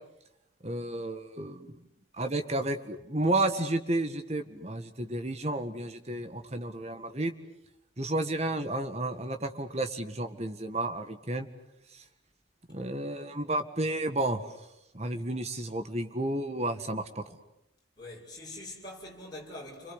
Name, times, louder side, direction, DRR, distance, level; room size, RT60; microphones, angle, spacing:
voice 1, 0.6-1.7 2.1-7.3 8.0-11.5 12.7-14.4 14.9-17.4, right 1 dB, 35° right, 1.8 m, -32 dB
voice 2, 18.0-19.9, left 1 dB, 20° left, 7.1 m, -44 dB
30.0 x 23.5 x 8.2 m
head